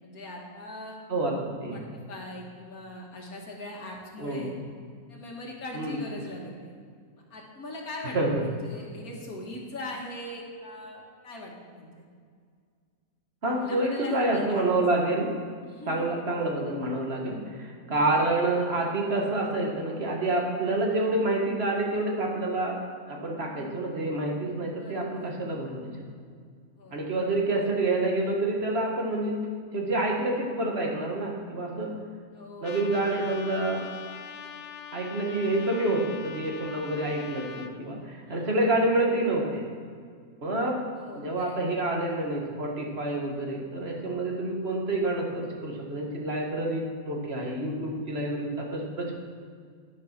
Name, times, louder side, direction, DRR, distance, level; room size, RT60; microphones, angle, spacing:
voice 1, 0.0-1.0 1.7-4.5 5.1-6.7 7.3-12.0 13.4-14.7 15.6-16.1 24.8-25.3 26.8-27.0 32.3-32.9 38.3-39.0 40.9-41.7 44.6-45.0, left 1 dB, 75° left, -1 dB, 2.3 m, -41 dB
voice 2, 1.1-1.8 4.2-4.6 5.7-6.0 8.1-8.4 13.4-15.3 15.9-22.8 23.1-26.0 26.9-29.4 29.7-31.9 32.6-33.9 34.9-39.7 40.4-40.8 41.2-49.1, right 2 dB, 45° right, 0 dB, 1.8 m, -28 dB
Trumpet, 32.6-37.7, left 7 dB, 60° left, 0.7 m, -42 dB
11.0 x 7.1 x 5.9 m, 2.1 s
omnidirectional pair, 1.6 m